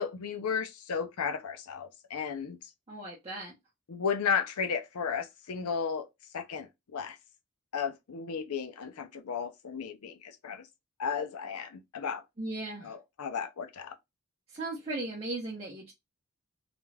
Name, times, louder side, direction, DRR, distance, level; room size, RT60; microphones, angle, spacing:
voice 1, 0.0-2.6 3.9-6.1 6.3-7.2 7.7-10.6 11.0-12.2 12.8-13.9, left 6 dB, 90° left, 0.5 m, -34 dB
voice 2, 2.9-3.5 12.4-12.9 14.5-15.9, right 2 dB, 25° right, 0.7 m, -37 dB
2.5 x 2.2 x 3.1 m
head